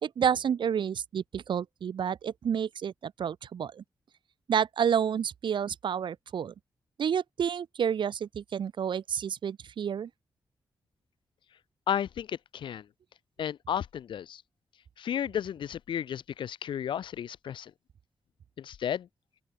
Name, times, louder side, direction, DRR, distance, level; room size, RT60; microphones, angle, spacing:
voice 1, 0.0-3.8 4.5-6.5 7.0-10.1, right 8 dB, 75° right, 1.4 m, -29 dB
voice 2, 11.9-12.9 13.4-14.4 15.0-17.7 18.6-19.1, left 9 dB, 85° left, 0.7 m, -33 dB
open air
cardioid pair, 75°, 8 cm